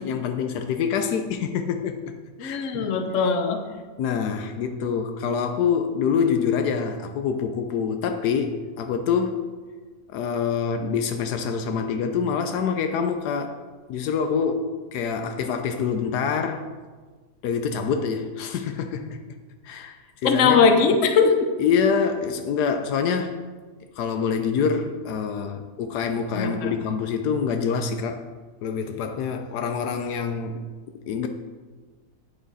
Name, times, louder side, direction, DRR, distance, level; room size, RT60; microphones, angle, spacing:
voice 1, 0.0-2.0 2.4-2.9 4.0-9.4 10.1-13.6 13.9-16.7 17.4-19.2 19.6-20.6 21.6-23.4 24.0-28.3 28.6-30.6 31.1-31.3, left 6 dB, 80° left, 7 dB, 1.2 m, -26 dB
voice 2, 2.4-3.6 20.2-21.5 26.3-26.7, left 5 dB, 55° left, 5 dB, 1.1 m, -20 dB
8.7 x 7.1 x 4.1 m, 1.4 s
omnidirectional pair, 1.7 m